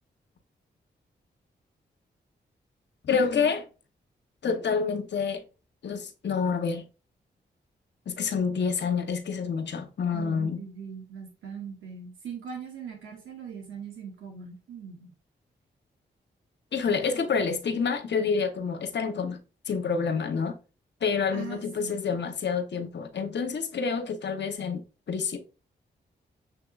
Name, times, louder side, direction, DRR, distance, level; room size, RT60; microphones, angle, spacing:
voice 1, 3.0-3.6 4.4-5.4 5.8-6.8 8.1-10.6 16.7-19.4 19.7-20.6 21.0-25.4, left 5 dB, 65° left, 0.8 m, -28 dB
voice 2, 10.1-15.1 21.3-21.9, right 7 dB, 85° right, 0.9 m, -40 dB
6.8 x 2.8 x 2.3 m
supercardioid pair, 45°, 20 cm